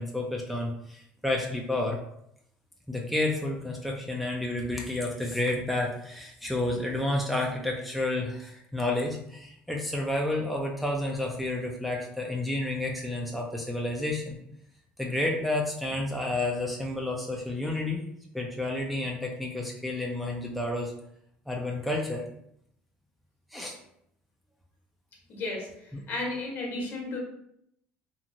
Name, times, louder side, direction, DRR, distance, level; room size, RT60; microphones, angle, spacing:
voice 1, 0.0-2.0 2.9-14.4 15.0-18.1 18.3-20.9 21.5-22.3 23.5-23.8 25.9-26.0, left 2 dB, ahead, -2 dB, 0.4 m, -30 dB
voice 2, 25.3-27.2, left 2 dB, 55° left, -1 dB, 1.0 m, -34 dB
2.9 x 2.3 x 2.6 m, 0.75 s
supercardioid pair, 105°, 4 cm